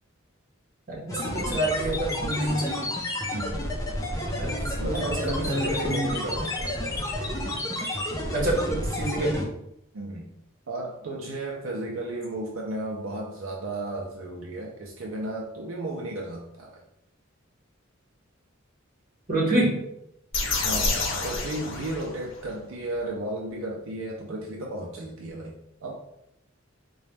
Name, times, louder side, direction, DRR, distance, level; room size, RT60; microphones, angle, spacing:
voice 1, 0.9-2.9 4.4-6.1 8.3-9.5 19.3-19.7, right 1 dB, 45° right, -3 dB, 1.3 m, -27 dB
sound 1, 1.1-9.4, left 1 dB, 15° left, 0.6 m, -30 dB
voice 2, 3.3-3.7 4.8-6.8 9.9-10.3 10.7-16.8 20.6-25.9, right 1 dB, 80° right, -1 dB, 0.5 m, -34 dB
sound 2, 20.3-22.5, left 3 dB, 65° left, 0.7 m, -28 dB
3.9 x 2.3 x 3.2 m, 0.82 s
head